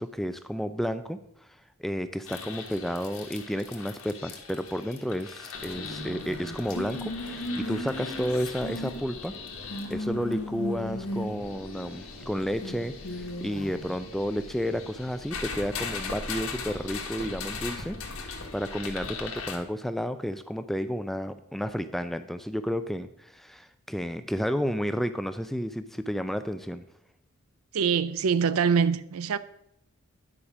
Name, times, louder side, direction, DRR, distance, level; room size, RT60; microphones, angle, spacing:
voice 1, 0.0-9.3 9.9-26.8, equal, ahead, 0.3 m, -32 dB
sound 1, 2.3-19.6, left 2 dB, 75° left, 1.4 m, -37 dB
voice 2, 27.7-29.4, right 6 dB, 75° right, 0.5 m, -24 dB
9.8 x 5.0 x 6.1 m
head